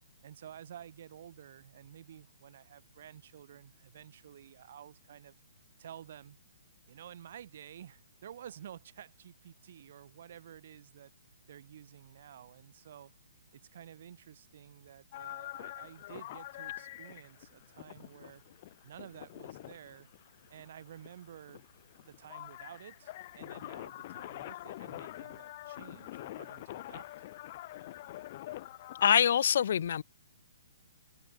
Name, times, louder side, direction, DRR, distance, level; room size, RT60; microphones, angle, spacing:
voice 1, 0.2-5.4 5.8-6.4 6.8-11.1 11.5-13.1 13.5-18.4 18.8-20.1 20.5-21.7 22.0-27.1, right 10 dB, 55° right, 1.4 m, -51 dB
sound 1, 15.1-29.0, left 15 dB, 40° left, 1.1 m, -46 dB
voice 2, 29.0-30.0, left 9 dB, 60° left, 0.6 m, -25 dB
hypercardioid pair, 140°, 0 cm